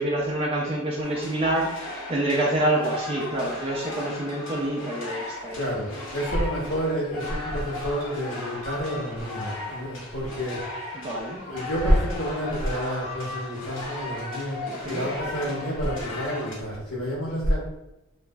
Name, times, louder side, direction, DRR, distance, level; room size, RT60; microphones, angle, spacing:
voice 1, 0.0-5.6 10.9-11.4 14.7-15.0 15.4-15.5, right 1 dB, 25° right, -3 dB, 0.4 m, -27 dB
sound 1, 1.0-16.6, left 2 dB, 65° left, 1.0 m, -36 dB
voice 2, 5.5-10.6 11.4-17.6, equal, 85° left, -6 dB, 1.1 m, -28 dB
2.9 x 2.4 x 2.2 m, 0.96 s
head